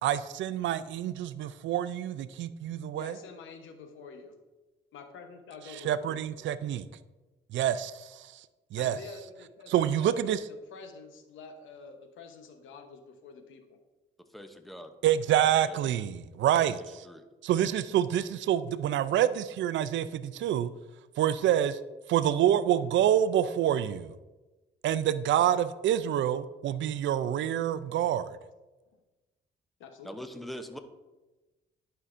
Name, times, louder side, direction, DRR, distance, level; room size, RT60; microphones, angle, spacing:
voice 1, 0.0-3.1 5.8-6.9 7.5-8.3 8.7-9.0 9.7-10.4 15.0-16.8 17.4-20.7 21.2-21.8 22.1-24.1 24.8-28.4, right 11 dB, 70° right, 14 dB, 0.4 m, -27 dB
voice 2, 2.9-4.4 4.9-6.3 8.8-13.8 29.8-30.2, left 4 dB, 80° left, 6 dB, 1.0 m, -48 dB
voice 3, 14.3-14.9 15.5-15.8 16.5-16.7 17.0-17.2 30.0-30.8, equal, ahead, 7 dB, 0.7 m, -42 dB
11.0 x 5.6 x 2.6 m, 1.1 s
cardioid pair, 90°, 20 cm